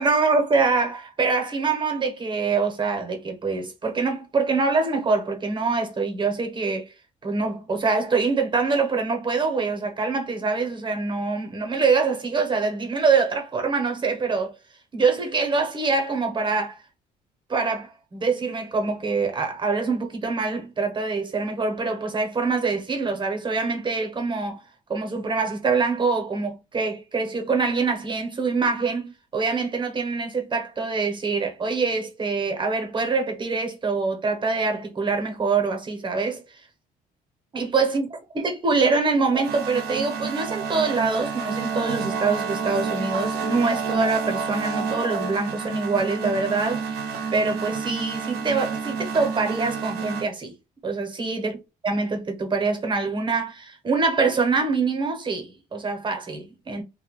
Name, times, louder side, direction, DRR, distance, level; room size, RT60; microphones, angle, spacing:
voice 1, 0.0-6.9 7.2-14.5 14.9-16.8 17.5-24.6 24.9-36.4 37.5-38.1 38.3-50.5 50.8-51.6 51.8-56.8, right 4 dB, 30° right, 0.9 m, -24 dB
sound 1, 39.2-50.3, right 5 dB, 70° right, 0.6 m, -29 dB
2.8 x 2.2 x 3.0 m
cardioid pair, 110°, 17 cm